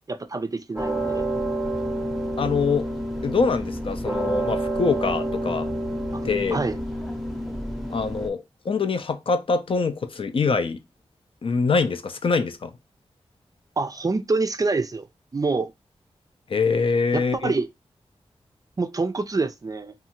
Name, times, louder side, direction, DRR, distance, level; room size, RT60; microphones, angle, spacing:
voice 1, 0.1-1.3 6.1-6.2 6.5-6.8 13.8-15.1 15.3-15.7 17.1-17.7 18.8-19.9, right 3 dB, 35° right, 0.4 m, -26 dB
sound 1, 0.8-8.3, right 1 dB, ahead, 0.7 m, -28 dB
voice 2, 2.4-2.9 3.2-5.7 6.2-6.6 7.9-10.8 11.4-12.7 16.5-17.5, left 4 dB, 55° left, 0.4 m, -24 dB
2.6 x 2.3 x 2.8 m
cardioid pair, 55°, 11 cm